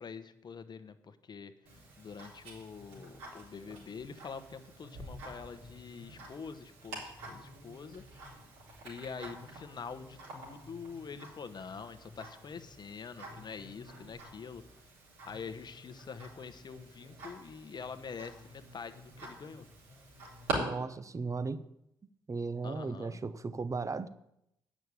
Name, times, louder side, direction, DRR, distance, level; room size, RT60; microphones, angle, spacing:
voice 1, 0.0-1.5 2.0-8.0 8.8-14.6 15.3-19.6 22.6-23.2, left 5 dB, 45° left, 1.0 m, -45 dB
Tick-tock, 1.7-20.5, right 3 dB, 80° right, 4.0 m, -47 dB
voice 2, 20.5-21.6 22.3-24.1, right 4 dB, 30° right, 0.9 m, -36 dB
9.2 x 6.3 x 8.5 m
hypercardioid pair, 45°, 10 cm